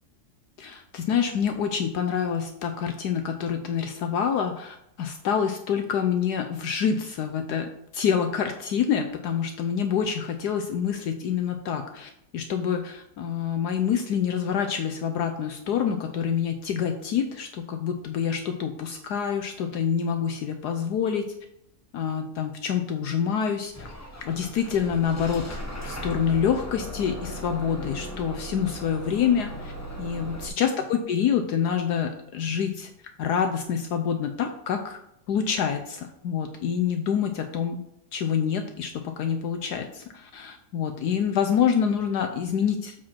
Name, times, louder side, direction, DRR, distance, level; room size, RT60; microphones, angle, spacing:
voice 1, 0.6-21.2 21.9-23.9 24.2-29.7 30.0-32.9 33.2-35.0 35.3-37.8 38.1-43.0, left 7 dB, 70° left, 5 dB, 1.2 m, -27 dB
Bus / Engine starting, 23.7-30.5, equal, 15° left, 0.6 m, -37 dB
7.3 x 5.0 x 4.3 m, 0.77 s
omnidirectional pair, 1.9 m